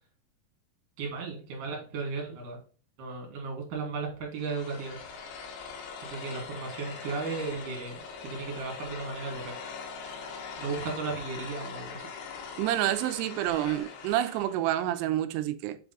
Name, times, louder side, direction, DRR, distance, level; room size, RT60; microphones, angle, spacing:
voice 1, 1.0-2.6 3.0-5.0 6.0-9.5 10.6-12.1, right 4 dB, 60° right, 3.5 m, -35 dB
sound 1, 4.4-14.7, left 5 dB, 85° left, 3.4 m, -42 dB
voice 2, 12.6-15.8, right 13 dB, 90° right, 2.7 m, -28 dB
7.1 x 3.5 x 3.9 m
omnidirectional pair, 4.7 m